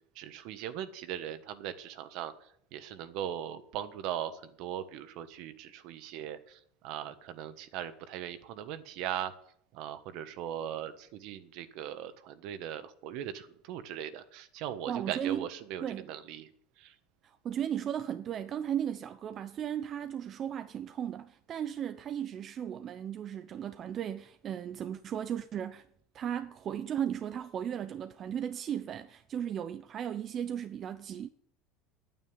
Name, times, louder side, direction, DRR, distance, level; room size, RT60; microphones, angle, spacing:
voice 1, 0.1-9.3 9.7-16.5 16.8-16.9, right 10 dB, 65° right, 1.3 m, -39 dB
voice 2, 14.9-15.4 15.8-16.1 17.2-25.8 26.1-31.3, right 9 dB, 40° right, 0.7 m, -36 dB
9.2 x 9.0 x 9.7 m
supercardioid pair, 120°, 0 cm